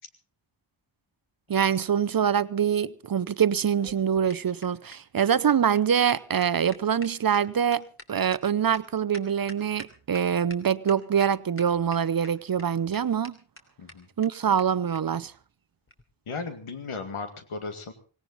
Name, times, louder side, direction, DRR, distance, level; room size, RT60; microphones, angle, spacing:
voice 1, 1.5-13.4 14.2-15.3, right 8 dB, 45° right, 0.7 m, -24 dB
sound 1, 3.5-10.2 10.5-10.6 10.9-11.3 11.6-12.3 12.6-12.7 12.9-13.0 13.2-13.3 13.6-13.7 13.9-14.0 14.2-14.3 14.6-14.7 14.9-15.0 15.9-16.0, left 1 dB, 25° left, 3.2 m, -46 dB
voice 2, 16.3-17.9, left 4 dB, 85° left, 2.2 m, -35 dB
18.0 x 18.0 x 4.0 m
cardioid pair, 55°, 49 cm